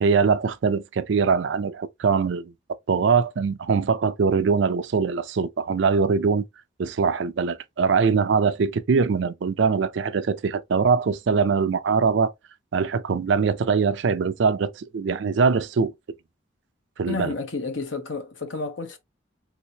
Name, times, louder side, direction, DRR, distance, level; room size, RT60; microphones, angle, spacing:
voice 1, 0.0-2.5 2.9-6.4 6.8-12.3 12.7-15.9 17.0-17.3, right 5 dB, 70° right, 0.4 m, -22 dB
voice 2, 17.1-19.0, left 3 dB, 80° left, 1.0 m, -31 dB
3.4 x 2.9 x 2.7 m
head